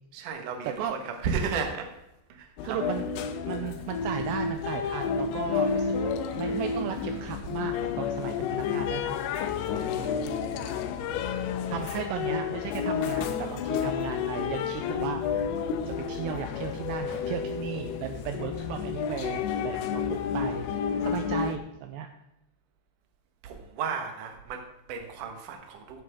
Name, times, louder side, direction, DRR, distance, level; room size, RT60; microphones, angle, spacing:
voice 1, 0.1-1.9 2.3-2.8 5.6-6.5 6.8-7.4 9.6-9.9 10.1-10.2 17.1-17.2 19.8-19.9 20.9-21.1 23.4-26.0, right 6 dB, 60° right, 4 dB, 2.3 m, -35 dB
sound 1, 2.6-21.6, left 7 dB, 80° left, 2.5 m, -30 dB
voice 2, 2.6-3.1 3.5-9.2 10.0-10.4 11.7-15.5 16.1-20.7 21.0-22.1, right 9 dB, 80° right, 6 dB, 2.6 m, -35 dB
15.5 x 7.5 x 3.6 m, 0.88 s
omnidirectional pair, 5.2 m